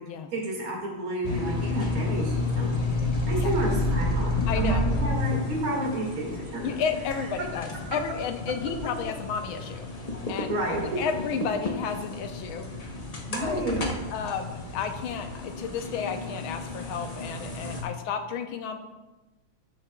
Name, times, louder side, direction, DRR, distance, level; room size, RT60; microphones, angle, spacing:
voice 1, 0.3-2.7 3.3-6.7 10.5-11.1 13.3-13.8, right 2 dB, 85° right, -2 dB, 2.9 m, -30 dB
sound 1, 1.2-17.8, left 2 dB, 55° left, 0.4 m, -31 dB
voice 2, 4.5-4.9 6.6-9.9 10.3-12.7 13.4-13.6 14.1-18.8, left 6 dB, 90° left, 7 dB, 1.6 m, -32 dB
14.0 x 6.6 x 2.3 m, 1.1 s
omnidirectional pair, 2.2 m